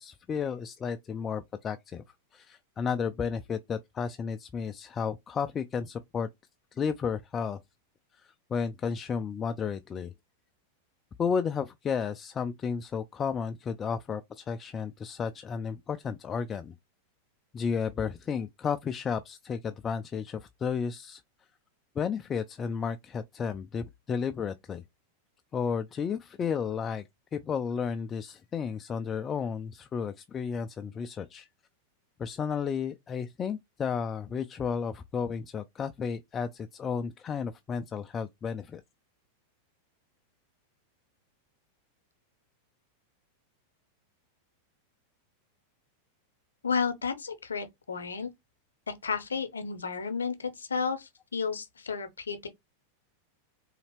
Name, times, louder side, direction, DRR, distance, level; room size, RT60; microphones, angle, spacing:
voice 1, 0.0-2.0 2.3-6.3 6.7-7.6 8.2-10.1 11.2-16.7 17.5-21.2 22.0-24.8 25.5-27.0 27.3-31.5 32.2-38.8, left 6 dB, 25° left, 0.3 m, -33 dB
voice 2, 46.6-48.3 48.9-52.5, left 5 dB, 70° left, 0.7 m, -32 dB
4.0 x 2.8 x 3.1 m
figure-of-eight pair, 90°, 0 cm